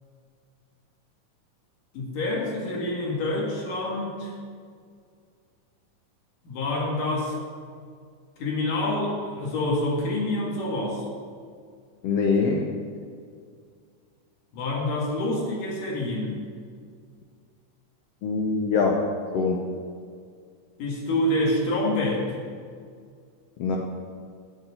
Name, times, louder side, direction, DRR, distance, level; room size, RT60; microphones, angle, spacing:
voice 1, 1.9-4.3 6.4-7.4 8.4-11.1 14.5-16.4 20.8-22.3, left 1 dB, 90° left, -3 dB, 3.6 m, -27 dB
voice 2, 12.0-12.7 18.2-19.0 19.3-19.7 23.6-23.8, left 4 dB, 70° left, 1 dB, 1.6 m, -23 dB
9.6 x 7.8 x 8.2 m, 2.1 s
omnidirectional pair, 3.7 m